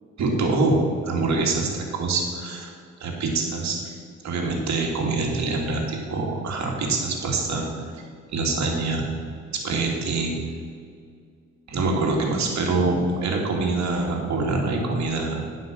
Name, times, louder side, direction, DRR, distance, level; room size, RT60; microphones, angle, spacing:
voice 1, 0.2-2.7 3.0-3.8 4.2-7.6 8.3-9.1 9.6-10.3 11.7-15.4, right 3 dB, 65° right, 0 dB, 2.4 m, -25 dB
10.0 x 5.7 x 7.5 m, 2.1 s
cardioid pair, 90°, 30 cm